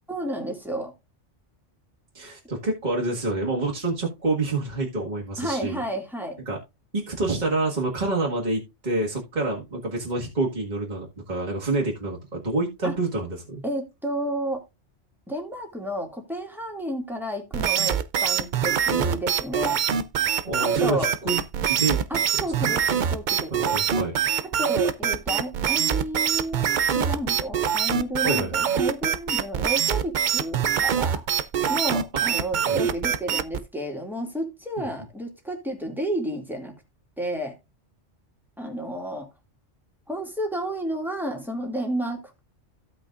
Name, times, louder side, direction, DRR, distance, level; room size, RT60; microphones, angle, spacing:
voice 1, 0.1-0.9 5.4-6.4 12.8-12.9 13.6-14.6 15.3-19.8 20.6-21.1 22.1-24.2 24.4-26.7 26.9-31.2 31.7-36.8 37.2-37.6 38.6-39.3 40.1-42.4, right 1 dB, ahead, 2.2 m, -31 dB
voice 2, 2.1-5.8 6.5-6.6 6.9-13.6 20.4-21.4 21.7-22.0 22.6-22.7 23.5-24.1 28.2-28.5 32.7-32.9 34.8-34.9, right 2 dB, 40° right, 1.9 m, -27 dB
sound 1, 17.5-33.6, right 8 dB, 55° right, 0.6 m, -24 dB
15.0 x 5.4 x 2.4 m
omnidirectional pair, 1.2 m